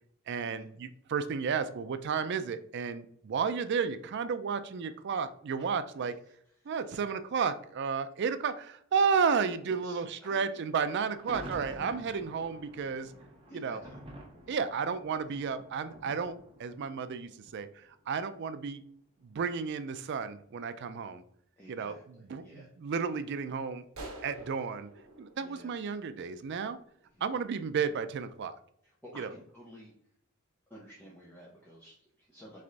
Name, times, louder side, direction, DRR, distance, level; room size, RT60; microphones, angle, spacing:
voice 1, 0.3-6.1 6.7-13.1 13.5-13.8 14.5-17.7 18.1-18.8 19.2-21.2 21.7-23.8 24.2-24.9 25.2-26.8 27.2-28.5 29.2-29.3, right 6 dB, 55° right, 11 dB, 0.4 m, -32 dB
voice 2, 6.6-7.0 9.6-10.6 13.5-14.0 21.6-22.7 25.4-25.7 27.1-27.3 28.8-29.9 30.7-32.6, equal, 10° left, -6 dB, 0.8 m, -52 dB
Thunder, 10.8-18.0, equal, 25° right, 0.9 m, -49 dB
sound 1, 23.9-26.5, right 2 dB, 85° right, 1.0 m, -48 dB
3.4 x 3.2 x 3.9 m, 0.67 s
head